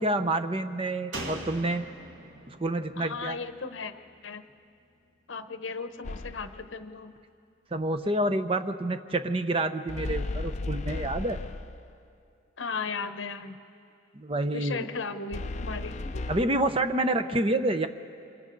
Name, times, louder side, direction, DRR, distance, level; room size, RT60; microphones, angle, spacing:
voice 1, 0.0-1.8 2.5-3.4 7.7-11.4 14.1-14.8 16.3-17.9, right 1 dB, 30° right, 8 dB, 0.7 m, -28 dB
Slam, 1.1-4.6 4.9-5.0, right 1 dB, 80° right, 2.0 m, -42 dB
voice 2, 3.0-3.9 4.2-4.4 5.3-7.1 12.6-13.6 14.5-16.2, left 4 dB, 75° left, 9 dB, 0.9 m, -36 dB
sound 1, 6.0-6.7 9.9-11.9 15.3-16.4, left 2 dB, 35° left, 0.5 m, -34 dB
29.0 x 26.5 x 4.0 m, 2.5 s
head